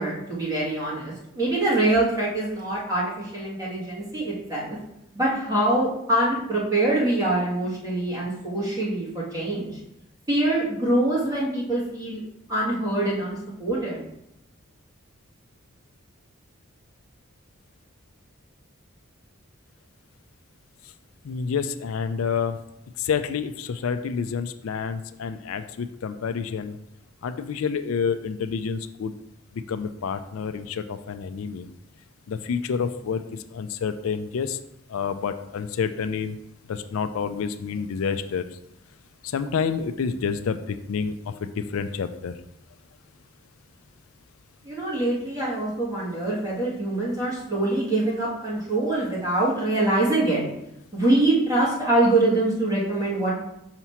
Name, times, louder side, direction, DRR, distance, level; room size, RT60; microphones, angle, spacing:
voice 1, 0.0-4.8 5.1-9.8 10.3-12.2 12.5-14.0 44.6-50.4 50.9-53.3, right 2 dB, 20° right, -7 dB, 1.9 m, -24 dB
voice 2, 21.2-22.6 23.0-26.8 27.2-29.1 29.7-31.7 32.3-33.2 33.5-34.6 34.9-36.3 36.7-38.4 39.2-41.1 41.4-42.3, left 6 dB, 85° left, 10 dB, 0.4 m, -28 dB
5.8 x 2.9 x 5.6 m, 0.83 s
head